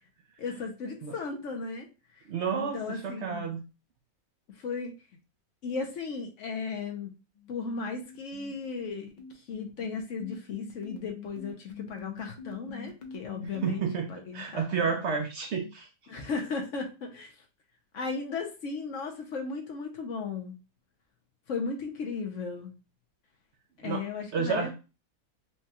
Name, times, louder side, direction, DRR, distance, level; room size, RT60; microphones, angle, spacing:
voice 1, 0.4-1.9 2.6-3.5 4.6-4.9 5.6-7.1 7.5-9.1 9.5-14.6 16.1-17.3 17.9-20.6 21.5-22.7 23.8-24.7, left 4 dB, 65° left, 0.9 m, -35 dB
voice 2, 2.3-3.6 13.6-15.9 23.8-24.1 24.3-24.7, right 6 dB, 65° right, 0.7 m, -31 dB
sound 1, 7.4-13.7, left 6 dB, 45° left, 0.6 m, -44 dB
4.5 x 2.3 x 2.8 m
omnidirectional pair, 1.5 m